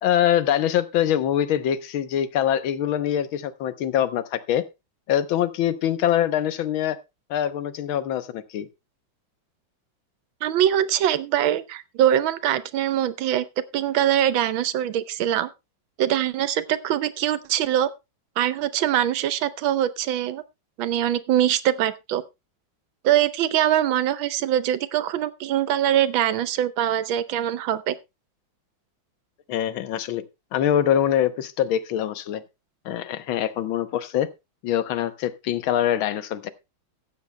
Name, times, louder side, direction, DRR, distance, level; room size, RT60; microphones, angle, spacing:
voice 1, 0.0-4.7 5.1-7.0 7.3-8.7 29.5-30.2 30.5-32.4 32.9-34.3 34.6-36.5, left 10 dB, 90° left, 1.7 m, -24 dB
voice 2, 10.4-13.4 13.7-15.5 16.0-17.9 18.4-20.4 20.8-22.2 23.0-27.9, right 11 dB, 85° right, 1.6 m, -23 dB
15.5 x 12.5 x 2.2 m
omnidirectional pair, 2.1 m